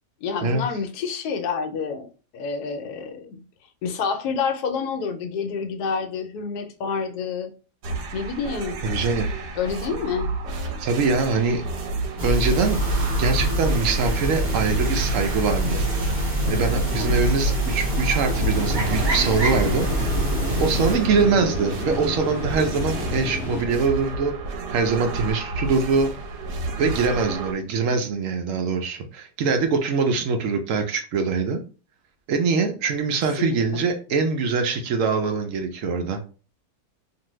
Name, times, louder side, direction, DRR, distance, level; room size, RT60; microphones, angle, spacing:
voice 1, 0.2-2.1 2.3-3.4 3.8-7.5 8.1-8.8 9.5-10.3 17.0-17.1 17.4-17.5 33.4-33.6, left 5 dB, 75° left, 1.1 m, -28 dB
sound 1, 7.8-27.5, right 3 dB, 85° right, 1.2 m, -31 dB
voice 2, 8.8-9.3 10.8-11.6 12.2-12.8 13.2-15.9 16.5-19.9 20.6-26.1 26.8-31.6 32.3-36.3, right 4 dB, 70° right, 0.8 m, -23 dB
sound 2, 12.2-20.9, right 1 dB, 30° right, 1.1 m, -24 dB
sound 3, 18.3-23.6, left 3 dB, 55° left, 0.7 m, -31 dB
2.7 x 2.5 x 2.9 m
omnidirectional pair, 1.7 m